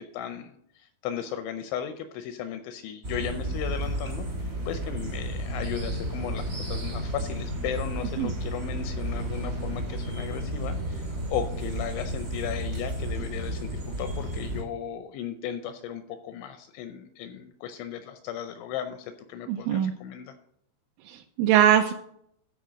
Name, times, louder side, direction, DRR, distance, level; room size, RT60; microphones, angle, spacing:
voice 1, 0.0-20.4, left 9 dB, 85° left, 8 dB, 2.7 m, -36 dB
sound 1, 3.0-14.6, right 1 dB, 55° right, 0.9 m, -32 dB
voice 2, 19.5-19.9 21.1-21.9, right 10 dB, 85° right, 4 dB, 2.9 m, -22 dB
13.0 x 4.4 x 6.2 m, 0.73 s
omnidirectional pair, 5.8 m